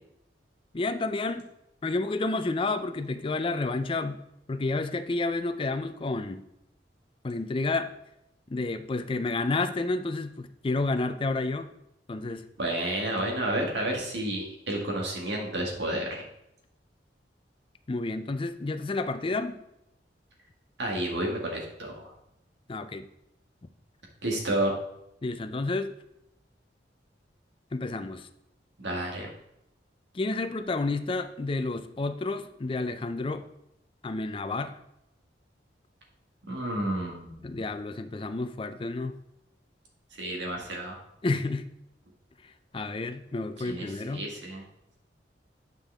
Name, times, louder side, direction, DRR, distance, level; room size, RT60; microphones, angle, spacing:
voice 1, 0.7-1.5 1.8-4.2 4.5-6.4 7.2-7.9 8.5-11.7 12.1-12.5 17.9-19.6 22.7-23.1 25.2-25.9 27.7-28.3 30.1-33.4 34.0-34.8 37.4-39.2 41.2-41.6 42.7-44.2, left 3 dB, 30° left, 9 dB, 0.4 m, -30 dB
voice 2, 12.6-16.2 20.8-22.0 24.2-24.7 28.8-29.3 36.5-37.6 40.2-41.0 43.6-44.6, right 1 dB, 75° right, -1 dB, 1.9 m, -31 dB
9.3 x 5.3 x 3.5 m, 0.82 s
head